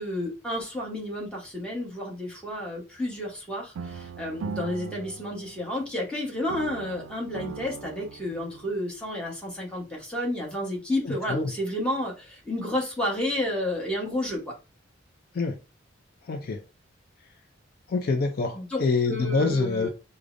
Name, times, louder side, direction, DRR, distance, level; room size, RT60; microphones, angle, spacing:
voice 1, 0.0-14.5 18.5-18.8 19.1-19.9, left 1 dB, 5° left, 1.1 m, -31 dB
sound 1, 3.8-6.1 6.5-8.7, right 6 dB, 85° right, 0.3 m, -39 dB
voice 2, 11.0-11.5 15.3-15.6 16.3-16.6 17.9-19.9, left 4 dB, 50° left, 0.4 m, -26 dB
4.8 x 2.0 x 2.5 m
head